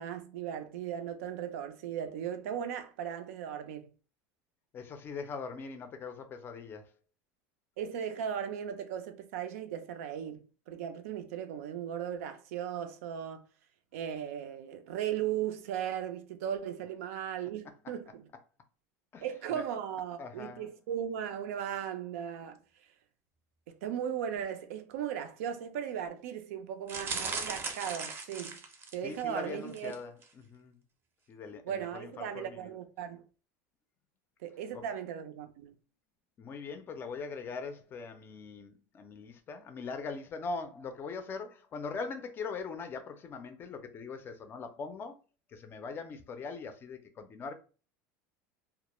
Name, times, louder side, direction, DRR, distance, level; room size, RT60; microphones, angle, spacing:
voice 1, 0.0-3.9 7.8-13.4 13.9-18.3 19.2-22.6 23.7-28.6 28.9-29.9 31.6-33.2 34.4-35.7, right 9 dB, 90° right, 0.4 m, -37 dB
voice 2, 4.7-6.9 19.1-19.3 19.5-19.6 20.2-20.7 29.0-30.8 31.3-32.7 34.7-34.8 36.4-45.2 45.5-47.5, left 4 dB, 30° left, 0.4 m, -41 dB
sound 1, 26.9-29.2 29.7-30.0 30.2-30.3, right 4 dB, 30° right, 0.5 m, -38 dB
2.1 x 2.0 x 3.0 m
supercardioid pair, 130°, 7 cm